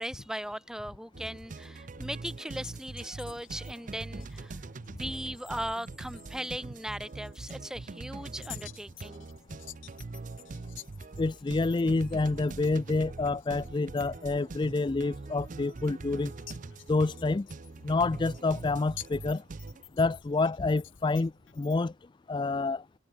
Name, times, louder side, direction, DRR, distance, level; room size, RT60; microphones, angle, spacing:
voice 1, 0.0-4.6 5.0-9.3, equal, 5° right, 2.0 m, -38 dB
sound 1, 1.1-19.8, right 3 dB, 40° right, 0.5 m, -43 dB
sound 2, 2.6-21.8, left 11 dB, 85° left, 2.3 m, -52 dB
voice 2, 11.2-16.3 16.9-17.5 17.8-19.4 20.0-21.9 22.3-22.8, left 3 dB, 25° left, 0.4 m, -28 dB
head